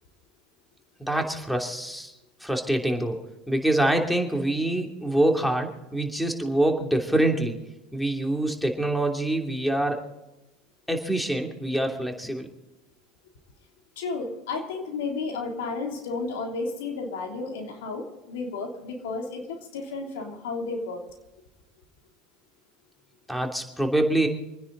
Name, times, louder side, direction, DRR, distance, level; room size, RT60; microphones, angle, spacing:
voice 1, 1.0-2.1 2.4-7.6 7.9-10.0 10.9-12.5 23.3-24.3, right 1 dB, ahead, 3 dB, 3.0 m, -25 dB
voice 2, 14.0-21.0, left 3 dB, 75° left, 2 dB, 3.2 m, -32 dB
27.5 x 10.0 x 4.1 m, 1.0 s
hypercardioid pair, 85°, 0 cm